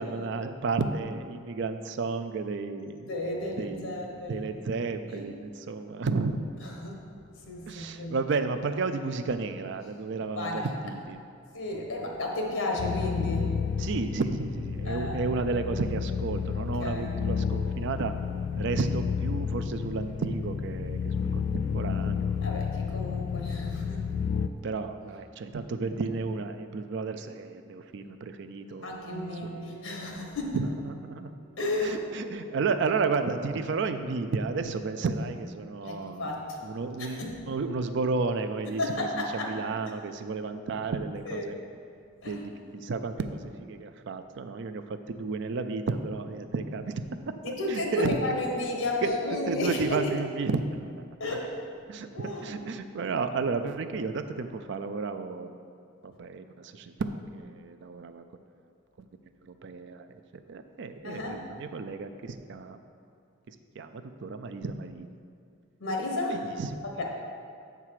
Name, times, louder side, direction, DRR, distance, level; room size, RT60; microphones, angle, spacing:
voice 1, 0.0-3.1 3.6-6.6 7.7-11.2 13.8-18.1 18.6-22.5 24.6-29.6 30.5-31.3 31.8-36.3 36.6-41.6 42.3-46.9 47.3-48.4 49.0-49.1 49.5-51.1 51.9-55.5 56.0-58.2 59.4-62.8 63.5-65.1 66.3-67.0, right 4 dB, 60° right, 9 dB, 0.4 m, -32 dB
voice 2, 3.1-4.5 5.1-5.2 6.6-7.0 7.4-8.2 10.4-10.7 11.5-13.5 14.9-15.1 16.5-17.1 22.4-24.1 28.8-30.6 31.6-32.7 35.8-36.6 37.0-37.4 38.8-39.5 41.2-41.5 42.2-42.4 47.4-50.1 51.2-51.5 52.1-52.6 61.0-61.4 65.8-66.4 66.8-67.0, left 2 dB, 80° left, 0 dB, 1.2 m, -33 dB
sound 1, 12.8-24.5, left 6 dB, 60° left, 0.3 m, -31 dB
Piano, 29.1-38.4, right 1 dB, 80° right, 1.0 m, -52 dB
6.7 x 4.7 x 5.7 m, 2.4 s
head